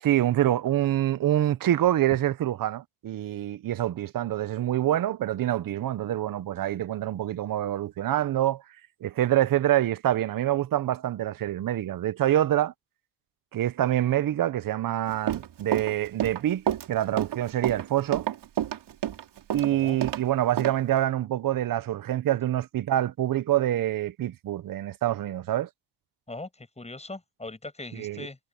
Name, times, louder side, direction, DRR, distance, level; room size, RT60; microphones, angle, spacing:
voice 1, 0.0-8.6 9.0-12.7 13.5-18.3 19.5-25.7 27.9-28.3, right 13 dB, 45° right, 0.9 m, -26 dB
Run, 15.1-20.2 20.6-20.7, right 10 dB, 65° right, 4.6 m, -29 dB
voice 2, 19.7-20.0 26.3-28.4, left 2 dB, 15° left, 7.7 m, -40 dB
cardioid pair, 105°, 45 cm